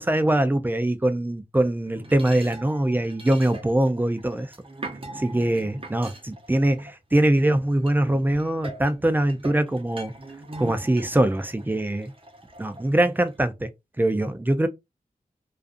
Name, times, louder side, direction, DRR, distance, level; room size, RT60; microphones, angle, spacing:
voice 1, 0.0-4.5 5.2-10.1 10.6-12.1 12.6-13.7 14.0-14.7, right 1 dB, 10° right, 0.3 m, -23 dB
sound 1, 1.8-7.4 7.9-13.4, right 2 dB, 35° right, 0.8 m, -42 dB
2.4 x 2.3 x 2.4 m
wide cardioid pair, 85°, 15 cm